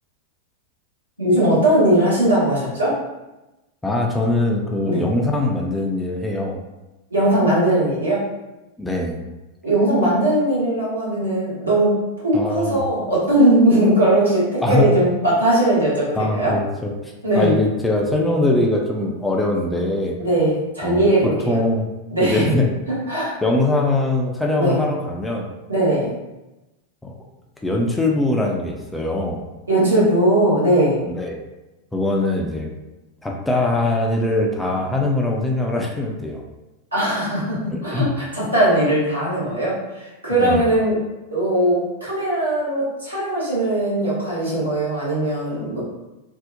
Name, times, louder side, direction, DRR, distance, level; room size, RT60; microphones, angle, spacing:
voice 1, 1.2-3.0 4.8-5.0 7.1-8.2 9.6-16.5 17.2-17.6 20.2-21.6 22.1-22.5 23.1-23.4 24.5-24.8 25.7-26.1 29.7-31.0 36.9-41.0 41.3-45.8, right 1 dB, 85° right, -9 dB, 1.1 m, -19 dB
voice 2, 3.8-6.6 8.8-9.2 12.3-12.8 14.6-14.9 16.1-20.2 20.8-21.1 21.5-21.9 22.2-22.7 23.4-25.5 27.0-27.1 27.6-29.4 31.1-31.4 31.9-32.7 33.2-36.4 37.9-38.1 40.4-40.7, left 2 dB, 10° left, 0 dB, 0.3 m, -22 dB
2.6 x 2.0 x 2.5 m, 1.0 s
figure-of-eight pair, 90°, 0 cm